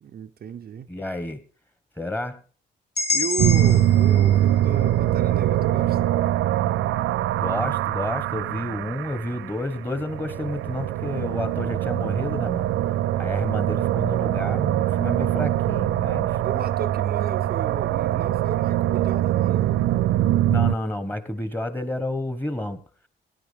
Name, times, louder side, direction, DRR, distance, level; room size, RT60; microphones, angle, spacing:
voice 1, 0.0-0.9 3.1-6.0 16.4-19.7, right 8 dB, 50° right, 0.7 m, -34 dB
voice 2, 0.9-1.4 2.0-2.4 7.4-12.7 13.2-16.4 20.5-22.8, left 1 dB, 10° left, 1.4 m, -30 dB
sound 1, 3.0-7.0, left 4 dB, 55° left, 2.1 m, -31 dB
sound 2, 3.4-20.7, right 13 dB, 85° right, 0.5 m, -23 dB
18.5 x 10.0 x 3.5 m
cardioid pair, 90°, 20 cm